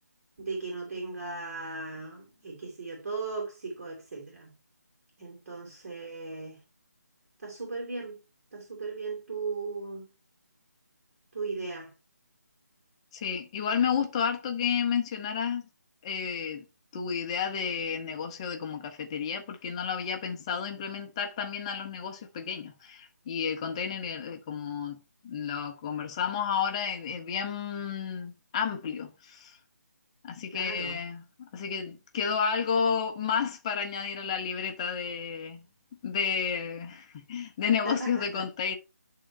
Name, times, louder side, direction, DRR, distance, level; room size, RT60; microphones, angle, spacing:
voice 1, 0.4-4.5 5.2-6.6 7.4-8.2 8.5-10.1 11.3-11.9 30.5-31.0 37.8-38.4, right 3 dB, 50° right, 3.5 m, -37 dB
voice 2, 13.1-15.6 16.0-16.6 16.9-25.0 25.2-29.6 30.2-35.6 36.0-38.8, left 7 dB, 20° left, 0.8 m, -31 dB
9.9 x 3.8 x 4.4 m
figure-of-eight pair, 165°, 9 cm